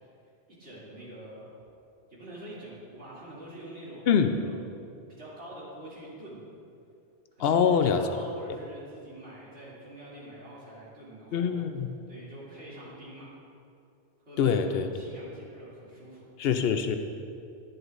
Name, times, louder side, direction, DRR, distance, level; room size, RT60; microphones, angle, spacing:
voice 1, 0.6-1.6 2.1-4.5 5.1-6.4 7.3-11.6 12.1-13.3 14.2-16.3, right 1 dB, 90° right, -9 dB, 3.0 m, -45 dB
voice 2, 7.4-8.0 11.3-11.9 14.4-14.9 16.4-17.0, left 7 dB, 65° left, 7 dB, 0.7 m, -24 dB
11.0 x 10.5 x 2.6 m, 2.6 s
omnidirectional pair, 1.1 m